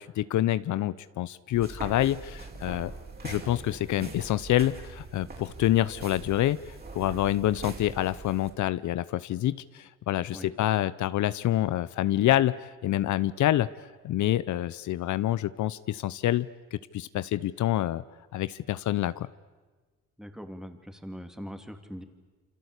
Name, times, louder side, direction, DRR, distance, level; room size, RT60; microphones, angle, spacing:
voice 1, 0.0-2.9 3.2-6.6 6.9-13.7 14.0-18.0 18.3-19.3, left 13 dB, 75° left, 16 dB, 0.8 m, -27 dB
sound 1, 1.5-8.5, right 3 dB, 30° right, 5.4 m, -42 dB
voice 2, 20.2-22.0, equal, ahead, 7 dB, 2.9 m, -41 dB
28.0 x 25.5 x 8.3 m, 1.3 s
cardioid pair, 90°, 30 cm